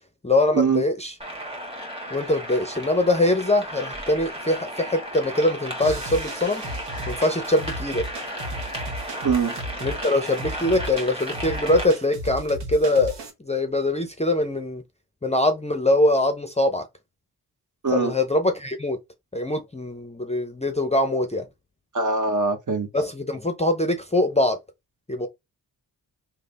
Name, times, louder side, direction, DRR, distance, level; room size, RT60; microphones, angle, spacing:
voice 1, 0.2-1.1 2.1-6.6 7.1-8.0 9.8-13.1 13.4-14.8 15.2-16.8 17.9-19.0 19.3-21.4 22.9-24.6 25.1-25.3, left 1 dB, 15° left, 0.5 m, -23 dB
sound 1, 1.2-11.8, equal, 15° right, 1.3 m, -34 dB
sound 2, 5.8-13.3, right 1 dB, 85° right, 1.0 m, -35 dB
voice 2, 9.2-9.5 17.8-18.1 21.9-22.9, right 4 dB, 45° right, 1.0 m, -22 dB
3.2 x 2.1 x 3.9 m
wide cardioid pair, 75°, 41 cm